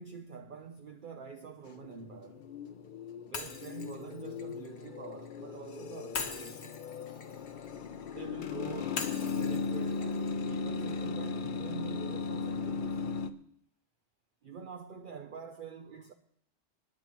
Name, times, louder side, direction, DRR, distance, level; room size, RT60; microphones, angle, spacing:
voice 1, 0.0-2.5 3.2-6.8 8.1-9.1 9.4-13.0 14.4-16.1, right 6 dB, 55° right, 0.8 m, -46 dB
sound 1, 1.7-13.3, left 5 dB, 55° left, 0.7 m, -37 dB
Shatter, 3.3-5.4 6.1-8.2 9.0-11.1, left 5 dB, 75° left, 1.3 m, -42 dB
28.0 x 9.4 x 3.0 m
omnidirectional pair, 1.1 m